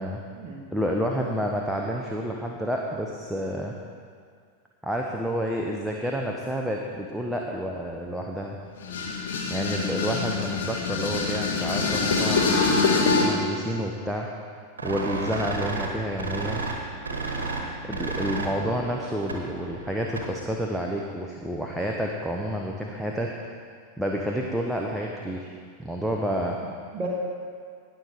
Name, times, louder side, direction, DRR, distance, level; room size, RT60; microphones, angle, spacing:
voice 1, 0.7-3.7 4.8-8.6 9.5-14.3 14.8-16.6 17.8-23.3 24.0-25.5 25.8-26.6, equal, 5° right, -1 dB, 0.9 m, -29 dB
sound 1, 8.8-13.2, left 4 dB, 60° left, 1.7 m, -24 dB
sound 2, 14.8-20.5, right 3 dB, 70° right, 1.4 m, -33 dB
voice 2, 18.2-18.8 26.6-27.1, right 3 dB, 30° right, -5 dB, 1.5 m, -37 dB
18.5 x 6.5 x 4.6 m, 2.1 s
figure-of-eight pair, 90°, 0 cm